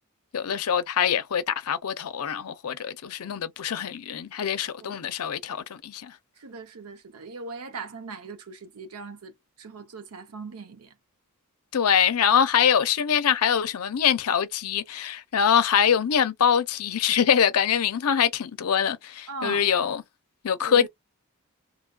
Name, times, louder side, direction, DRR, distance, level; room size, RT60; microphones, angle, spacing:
voice 1, 0.3-6.1 11.7-20.0 20.4-20.9, left 8 dB, 80° left, 0.5 m, -24 dB
voice 2, 6.4-10.9 19.3-19.7 20.6-20.9, right 4 dB, 75° right, 0.7 m, -39 dB
3.1 x 2.3 x 2.2 m
head